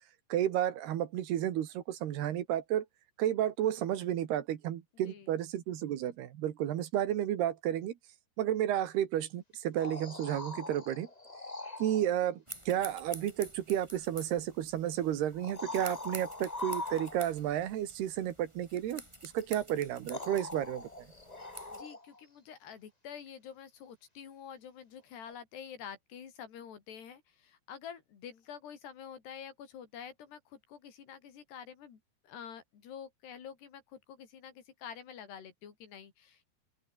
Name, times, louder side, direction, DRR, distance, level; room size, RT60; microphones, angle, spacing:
voice 1, 0.3-2.9 3.2-8.0 8.4-11.1 11.8-20.9, right 11 dB, 70° right, 3.6 m, -32 dB
voice 2, 4.9-5.4 21.7-36.5, left 8 dB, 70° left, 5.6 m, -48 dB
sound 1, 9.5-12.1 14.0-14.1 15.3-17.5 19.4-19.5 20.1-22.2 25.3-25.4, left 2 dB, 30° left, 0.7 m, -42 dB
sound 2, 12.5-21.8, right 1 dB, 5° right, 7.8 m, -50 dB
open air
omnidirectional pair, 5.0 m